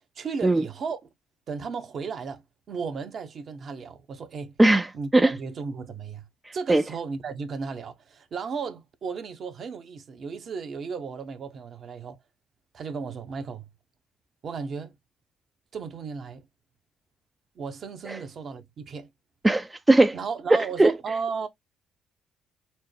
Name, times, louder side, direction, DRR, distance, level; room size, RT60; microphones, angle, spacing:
voice 1, 0.2-1.0 1.5-4.5 4.9-6.3 6.5-12.2 12.7-13.7 14.4-15.0 15.7-16.4 17.5-19.1 20.1-21.5, right 5 dB, 50° right, 0.9 m, -35 dB
voice 2, 4.6-5.3 6.5-6.8 19.4-20.2 20.5-20.9, right 2 dB, 15° right, 0.4 m, -19 dB
4.4 x 2.1 x 4.5 m
hypercardioid pair, 50°, 0 cm